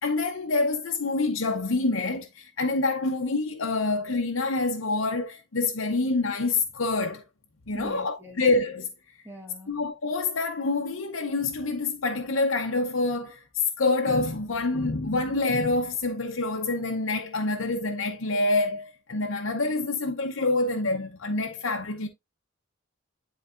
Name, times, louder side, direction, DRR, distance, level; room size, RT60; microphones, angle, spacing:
voice 1, 0.0-7.2 7.7-8.9 9.7-13.4 13.8-22.1, left 3 dB, 75° left, 0.8 m, -26 dB
voice 2, 7.7-8.4 9.2-9.7, right 1 dB, 10° right, 1.5 m, -42 dB
10.5 x 4.0 x 2.5 m
head